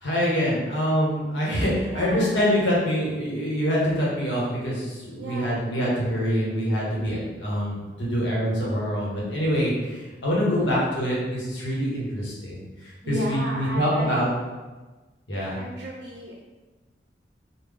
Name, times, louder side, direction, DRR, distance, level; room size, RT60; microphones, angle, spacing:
voice 1, 0.0-12.6 13.1-14.3 15.3-15.6, equal, 85° left, -5 dB, 1.1 m, -25 dB
voice 2, 1.9-2.3 5.2-5.5 10.6-10.9 13.0-14.3 15.6-16.4, equal, 65° right, -2 dB, 0.5 m, -34 dB
3.6 x 2.2 x 3.5 m, 1.2 s
head